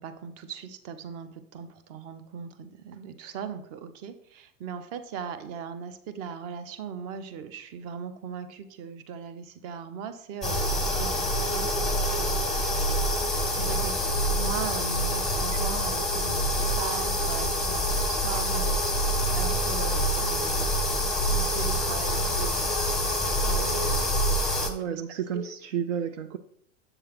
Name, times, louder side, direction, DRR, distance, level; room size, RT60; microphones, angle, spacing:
voice 1, 0.0-12.5 13.5-14.0 14.2-18.8 19.3-20.7 21.3-22.7 23.4-24.1 24.6-25.0 25.3-25.5, right 6 dB, 40° right, 11 dB, 0.8 m, -38 dB
sound 1, 10.4-24.7, equal, ahead, 0.8 m, -26 dB
voice 2, 24.6-26.4, right 8 dB, 70° right, 9 dB, 0.5 m, -31 dB
7.7 x 6.5 x 3.0 m, 0.70 s
hypercardioid pair, 90°, 38 cm